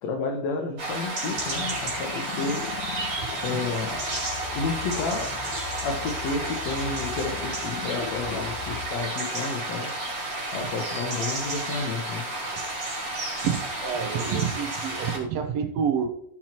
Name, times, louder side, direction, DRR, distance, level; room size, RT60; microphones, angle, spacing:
voice 1, 0.0-2.6 3.4-4.0 4.5-5.3 5.8-9.9 10.5-12.2, left 3 dB, 70° left, 3 dB, 1.8 m, -31 dB
sound 1, 0.8-15.2, right 2 dB, 45° right, 4.9 m, -31 dB
sound 2, 1.4-8.9, left 10 dB, 90° left, 2.5 m, -39 dB
voice 2, 13.4-16.1, right 7 dB, 75° right, 6 dB, 1.5 m, -28 dB
17.5 x 6.0 x 3.0 m, 0.77 s
omnidirectional pair, 4.0 m